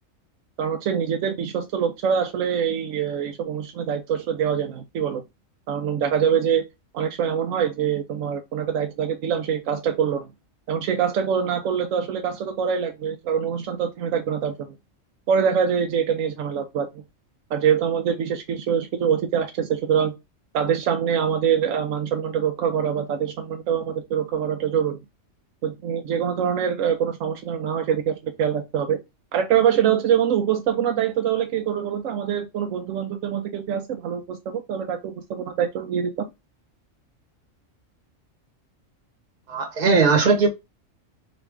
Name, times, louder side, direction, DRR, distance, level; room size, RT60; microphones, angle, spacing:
voice 1, 0.6-5.2 5.7-6.6 6.9-10.3 10.7-14.7 15.3-17.0 17.5-20.1 20.5-25.0 25.6-29.0 29.3-36.3, right 8 dB, 80° right, 1.0 m, -24 dB
voice 2, 39.5-40.5, right 4 dB, 35° right, 1.1 m, -18 dB
4.0 x 2.5 x 3.4 m
omnidirectional pair, 1.4 m